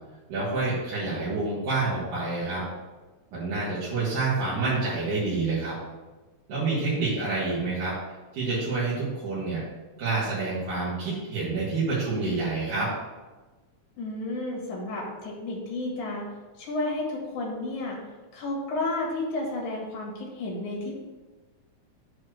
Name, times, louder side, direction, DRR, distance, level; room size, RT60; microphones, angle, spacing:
voice 1, 0.3-2.6 3.3-5.8 6.5-8.0 8.3-9.6 10.0-12.9, right 3 dB, 85° right, -10 dB, 3.5 m, -28 dB
voice 2, 14.0-16.2 16.6-18.0 18.3-20.9, left 2 dB, 75° left, -1 dB, 3.2 m, -31 dB
8.6 x 3.2 x 6.5 m, 1.2 s
omnidirectional pair, 3.4 m